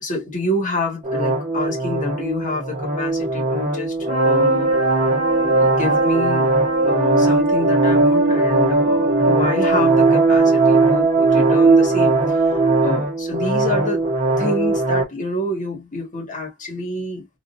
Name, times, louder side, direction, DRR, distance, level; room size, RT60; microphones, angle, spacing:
voice 1, 0.0-4.7 5.4-6.5 6.8-14.1 14.4-17.3, left 2 dB, 35° left, 1.5 m, -27 dB
sound 1, 1.0-15.0, right 3 dB, 30° right, 1.1 m, -18 dB
3.6 x 2.6 x 2.5 m
head